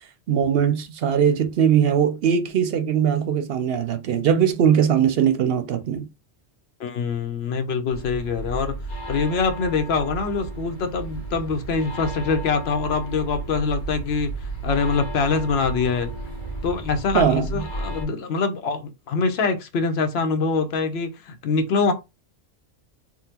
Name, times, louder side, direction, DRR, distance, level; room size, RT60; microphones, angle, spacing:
voice 1, 0.3-6.1 17.1-17.5, right 8 dB, 65° right, 0.7 m, -20 dB
voice 2, 6.8-8.7 9.1-16.1 16.6-21.9, left 4 dB, 70° left, 0.9 m, -24 dB
sound 1, 7.9-18.1, right 2 dB, 45° left, 1.3 m, -33 dB
3.7 x 2.1 x 2.8 m
omnidirectional pair, 1.1 m